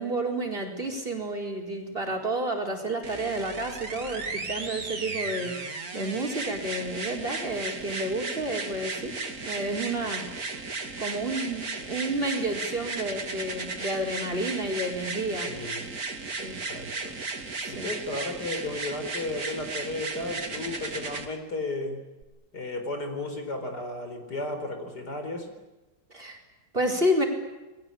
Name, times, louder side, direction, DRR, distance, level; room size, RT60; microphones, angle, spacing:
voice 1, 0.0-9.1 9.5-10.6 11.0-15.5 16.4-16.5 17.6-17.9 26.1-26.4 26.7-27.3, right 1 dB, 35° right, 1 dB, 4.8 m, -30 dB
sound 1, 3.0-21.3 22.2-22.3, right 3 dB, 60° right, 2.9 m, -35 dB
voice 2, 15.4-15.9 16.5-17.2 17.7-22.0 22.5-25.5, left 2 dB, 70° left, 5 dB, 5.1 m, -34 dB
29.0 x 21.0 x 8.7 m, 1.1 s
omnidirectional pair, 1.8 m